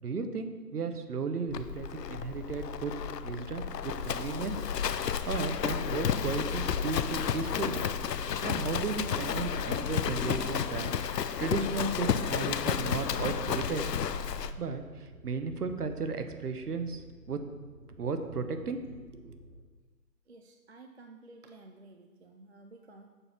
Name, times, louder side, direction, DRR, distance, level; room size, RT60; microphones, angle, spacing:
voice 1, 0.0-2.9 3.2-4.6 5.3-7.8 8.4-10.9 11.4-13.8 14.6-14.8 15.2-17.0 17.3-17.4 18.0-19.4, right 4 dB, 65° right, 8 dB, 1.0 m, -34 dB
Livestock farm animals working animals, 1.5-14.5, left 8 dB, 75° left, 0.6 m, -32 dB
sound 1, 6.3-19.6, right 1 dB, 25° right, 1.1 m, -52 dB
voice 2, 20.3-23.1, right 2 dB, 45° right, 4 dB, 0.5 m, -53 dB
7.1 x 5.4 x 5.8 m, 1.4 s
figure-of-eight pair, 160°, 49 cm